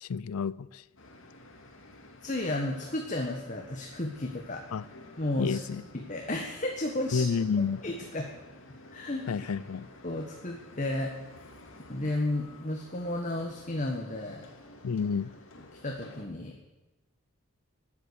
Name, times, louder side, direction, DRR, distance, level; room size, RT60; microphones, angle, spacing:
voice 1, 0.0-0.8 4.7-4.9 5.4-5.8 7.1-7.8 9.3-9.9 14.8-15.3, left 5 dB, 85° left, 21 dB, 0.5 m, -30 dB
sound 1, 1.0-16.3, left 2 dB, 60° left, 2.2 m, -52 dB
voice 2, 2.2-4.6 5.2-5.6 5.9-7.3 7.8-8.3 8.9-9.3 10.0-11.1 11.9-14.5 15.8-16.6, left 1 dB, 35° left, 1 dB, 1.4 m, -33 dB
13.5 x 9.9 x 8.4 m, 1.1 s
head